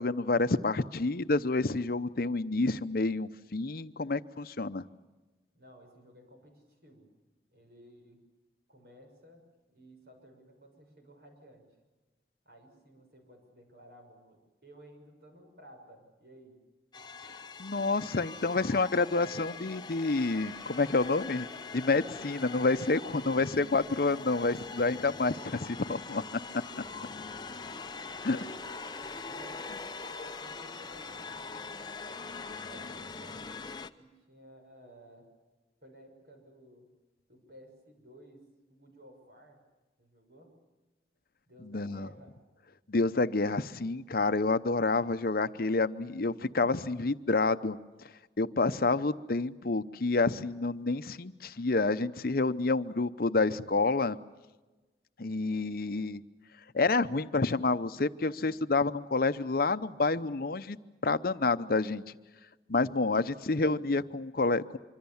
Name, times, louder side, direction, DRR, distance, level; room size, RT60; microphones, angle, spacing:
voice 1, 0.0-4.8 17.6-21.5 21.7-26.2 28.2-28.4 41.7-42.1 42.9-47.8 48.4-54.2 55.2-56.2 56.7-60.8 61.0-62.0 62.7-64.8, left 3 dB, 55° left, 12 dB, 0.7 m, -28 dB
voice 2, 5.5-7.1 7.5-8.3 8.7-11.7 12.4-16.6 27.0-27.5 28.2-28.8 29.3-31.7 32.1-33.4 34.0-35.3 35.8-36.9 37.3-39.6 40.0-40.5 41.5-42.4, equal, 60° right, 3 dB, 6.5 m, -56 dB
sound 1, 16.9-33.9, left 4 dB, 25° left, 0.8 m, -42 dB
25.0 x 25.0 x 7.2 m, 1.2 s
head